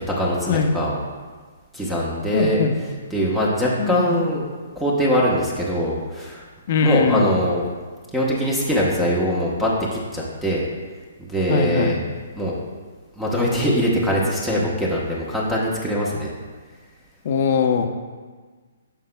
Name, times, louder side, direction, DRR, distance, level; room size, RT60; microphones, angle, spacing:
voice 1, 0.1-1.0 1.7-2.6 3.1-4.4 4.8-6.4 6.8-7.6 8.1-10.7 11.2-12.0 12.4-12.5 13.2-16.3, equal, 5° right, -5 dB, 1.0 m, -22 dB
voice 2, 2.3-2.7 3.8-4.2 6.7-7.3 11.5-12.0 17.2-17.9, left 5 dB, 50° left, 5 dB, 0.7 m, -21 dB
9.0 x 5.9 x 2.2 m, 1.4 s
hypercardioid pair, 140°, 0 cm